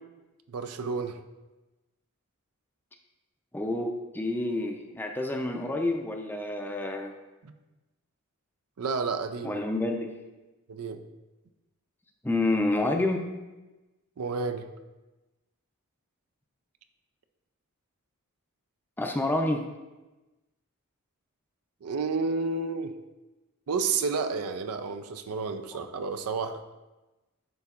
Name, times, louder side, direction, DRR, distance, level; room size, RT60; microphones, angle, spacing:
voice 1, 0.5-1.2 7.4-7.5 8.8-9.6 10.7-11.0 14.2-14.7 21.8-22.9 23.7-26.6, right 4 dB, 85° right, 8 dB, 0.5 m, -31 dB
voice 2, 3.5-7.1 9.4-10.1 12.2-13.3 19.0-19.6, left 2 dB, 10° left, 3 dB, 0.5 m, -28 dB
11.0 x 3.8 x 2.4 m, 1.1 s
head